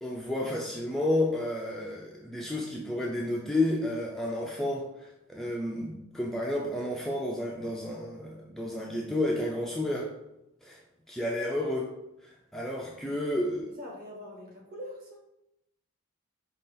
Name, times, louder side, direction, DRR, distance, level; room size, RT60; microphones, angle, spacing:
voice 1, 0.0-10.1 10.6-10.8 11.1-11.9 12.2-13.7, left 1 dB, ahead, -3 dB, 0.4 m, -31 dB
voice 2, 13.8-15.2, left 1 dB, 40° right, -1 dB, 1.2 m, -43 dB
5.2 x 2.4 x 3.8 m, 0.85 s
head